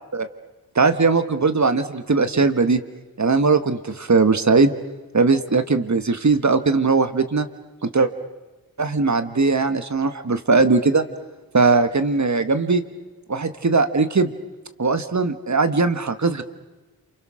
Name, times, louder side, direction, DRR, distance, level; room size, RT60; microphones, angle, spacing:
voice 1, 0.7-2.8 3.2-4.7 5.1-7.5 7.8-8.1 8.8-11.1 11.5-12.8 13.3-14.3 14.8-16.4, right 4 dB, 45° right, 10 dB, 1.5 m, -19 dB
28.5 x 27.5 x 6.4 m, 1.2 s
wide cardioid pair, 55°, 39 cm